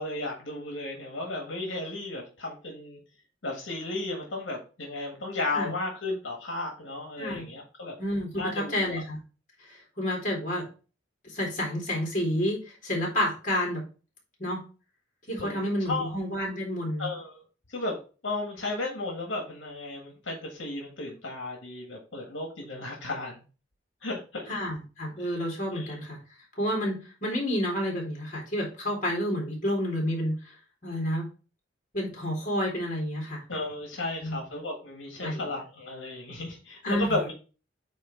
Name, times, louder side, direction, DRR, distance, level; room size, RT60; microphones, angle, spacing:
voice 1, 0.0-3.0 3.4-7.9 8.4-9.0 15.4-15.6 15.9-16.1 17.0-17.4 17.7-18.0 18.2-23.4 24.0-24.5 25.2-25.4 25.7-26.0 33.5-37.3, left 2 dB, 85° left, 1 dB, 1.6 m, -34 dB
voice 2, 8.0-9.2 9.6-10.7 11.2-13.8 14.4-14.6 15.3-17.1 24.5-26.2 26.6-30.5 30.8-31.3 31.9-33.4 34.2-34.4 35.2-35.4 36.8-37.2, equal, 45° left, -1 dB, 3.3 m, -30 dB
8.5 x 3.3 x 4.5 m, 0.34 s
head